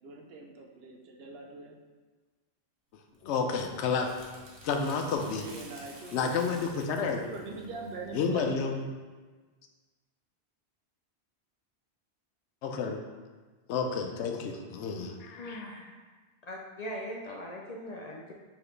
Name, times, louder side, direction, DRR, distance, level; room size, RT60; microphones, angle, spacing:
voice 1, 0.0-1.8 5.4-6.5 7.1-8.6 13.7-13.9, right 3 dB, 70° right, 1 dB, 0.8 m, -42 dB
sound 1, 3.1-8.6, right 1 dB, 85° right, 1.1 m, -52 dB
voice 2, 3.2-4.1 4.6-5.5 6.1-7.2 8.1-8.8 12.6-13.0 13.7-15.6, left 5 dB, 90° left, 4 dB, 0.9 m, -30 dB
voice 3, 15.4-15.8 16.4-18.3, equal, 55° left, -1 dB, 0.5 m, -40 dB
4.9 x 3.0 x 3.1 m, 1.4 s
omnidirectional pair, 1.1 m